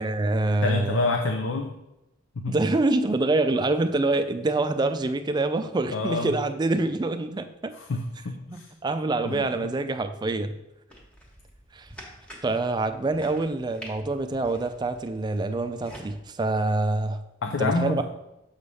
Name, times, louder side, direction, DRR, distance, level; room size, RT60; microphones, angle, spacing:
voice 1, 0.0-1.0 2.5-7.7 8.5-10.5 11.7-11.9 12.4-17.2 17.6-18.0, right 2 dB, 20° right, 9 dB, 0.4 m, -26 dB
voice 2, 0.6-1.7 2.4-2.6 5.9-6.3 7.8-8.7 9.3-9.7 17.4-18.0, left 3 dB, 80° left, 4 dB, 0.6 m, -27 dB
sound 1, 10.9-16.1, equal, 5° left, 1.2 m, -47 dB
7.1 x 3.3 x 5.4 m, 0.89 s
head